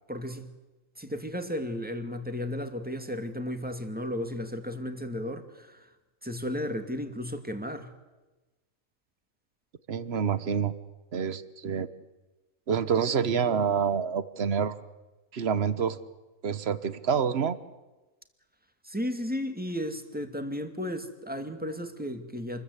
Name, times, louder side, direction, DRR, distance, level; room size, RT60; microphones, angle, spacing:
voice 1, 0.1-0.5 1.0-5.9 6.2-7.9 18.8-22.6, left 1 dB, 5° right, 7 dB, 2.2 m, -34 dB
voice 2, 9.9-10.7 11.1-11.9 12.7-14.8 15.3-16.0 16.4-17.6, right 7 dB, 50° right, 14 dB, 1.4 m, -27 dB
28.0 x 21.5 x 8.2 m, 1.1 s
omnidirectional pair, 1.5 m